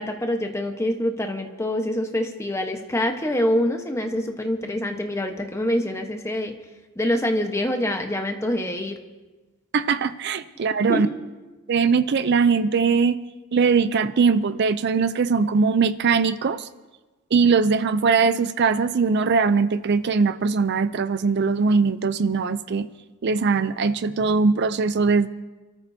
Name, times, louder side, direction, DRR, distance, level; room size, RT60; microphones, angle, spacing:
voice 1, 0.0-6.5 7.0-9.0 10.9-11.1, left 1 dB, 15° left, 4 dB, 1.0 m, -25 dB
voice 2, 9.7-11.1 11.7-13.2 13.5-16.7 17.3-22.9 23.2-25.3, right 5 dB, 50° right, 13 dB, 0.4 m, -21 dB
29.0 x 13.5 x 2.7 m, 1.2 s
head